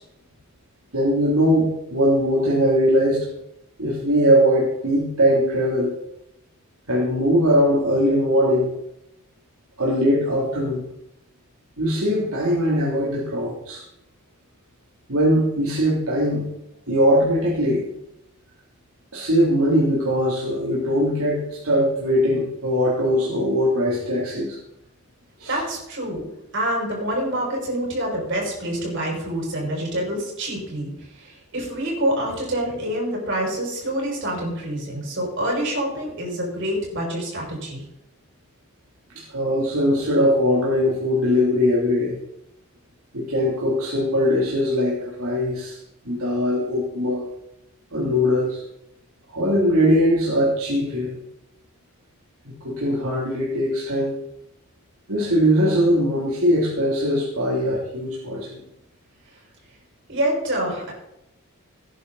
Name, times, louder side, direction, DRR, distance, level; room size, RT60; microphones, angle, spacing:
voice 1, 0.9-3.3 3.8-5.9 6.9-8.7 9.8-10.8 11.8-13.8 15.1-16.5 16.9-17.8 19.1-24.6 25.4-25.6 39.1-42.2 43.1-45.8 46.0-47.2 47.9-48.6 49.3-51.1 52.6-54.1 55.1-58.6, equal, 70° right, -5 dB, 3.4 m, -21 dB
voice 2, 25.5-30.9 31.2-37.8 60.1-60.9, right 1 dB, 55° right, -2 dB, 6.5 m, -26 dB
17.5 x 10.5 x 4.2 m, 0.83 s
head